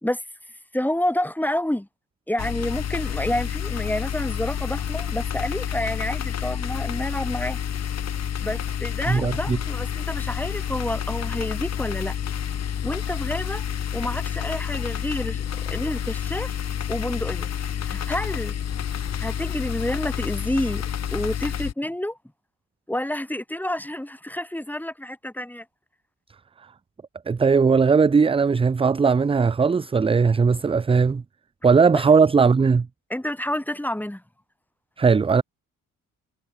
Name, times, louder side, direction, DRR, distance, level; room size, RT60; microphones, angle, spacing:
voice 1, 0.7-1.9 2.3-7.6 8.4-12.1 12.8-13.6 13.9-16.5 16.9-17.5 17.8-18.6 19.2-20.8 21.1-22.2 22.9-25.6 31.9-32.0 33.1-34.2, left 1 dB, 5° left, 4.6 m, -29 dB
sound 1, 2.4-21.7, left 9 dB, 50° left, 1.3 m, -29 dB
voice 2, 9.1-9.6 27.3-31.2 31.6-32.9 35.0-35.4, right 5 dB, 15° right, 0.4 m, -18 dB
cardioid pair, 100°, 34 cm